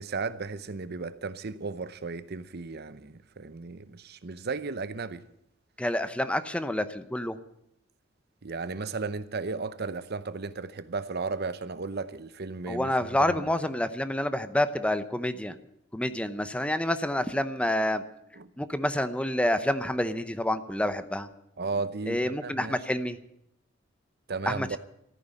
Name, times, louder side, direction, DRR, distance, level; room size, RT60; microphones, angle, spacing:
voice 1, 0.0-5.2 8.4-13.6 18.4-18.5 21.6-22.8 24.3-24.8, right 4 dB, 55° right, 0.8 m, -35 dB
voice 2, 5.8-7.4 12.7-15.6 15.9-18.0 18.6-21.3 22.1-23.2 24.5-24.8, left 1 dB, 5° left, 0.8 m, -28 dB
14.5 x 9.5 x 10.0 m
head